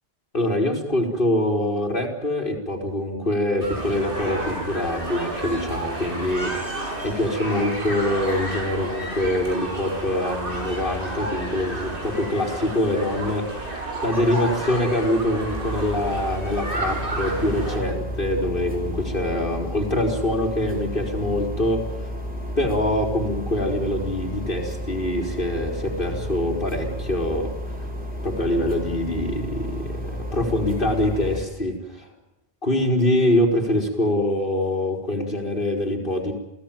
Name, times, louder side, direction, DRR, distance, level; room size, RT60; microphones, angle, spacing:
voice 1, 0.3-6.5 7.0-13.4 14.0-21.8 22.6-27.5 28.2-32.1 32.6-36.3, left 1 dB, 55° left, 2 dB, 4.7 m, -24 dB
sound 1, 3.6-17.8, right 1 dB, 55° right, 6.6 m, -31 dB
sound 2, 15.5-31.4, equal, 10° right, 4.4 m, -32 dB
28.0 x 17.0 x 9.3 m, 0.86 s
omnidirectional pair, 1.1 m